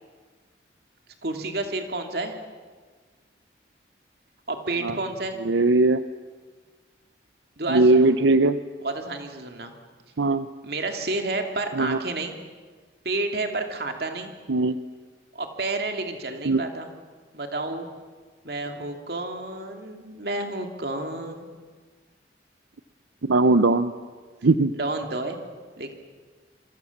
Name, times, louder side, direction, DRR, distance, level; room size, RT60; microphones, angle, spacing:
voice 1, 1.2-2.4 4.5-5.4 7.6-8.1 8.8-9.7 10.6-12.4 13.0-14.3 15.3-16.9 17.3-17.9 18.4-21.5 24.7-25.4 25.8-25.9, right 2 dB, 55° right, 4 dB, 2.8 m, -30 dB
voice 2, 5.5-6.0 7.7-8.6 10.2-10.5 11.8-12.0 14.5-14.8 16.5-16.6 23.2-23.9 24.4-24.7, right 2 dB, 90° right, 12 dB, 0.7 m, -19 dB
27.0 x 23.5 x 7.3 m, 1.5 s
head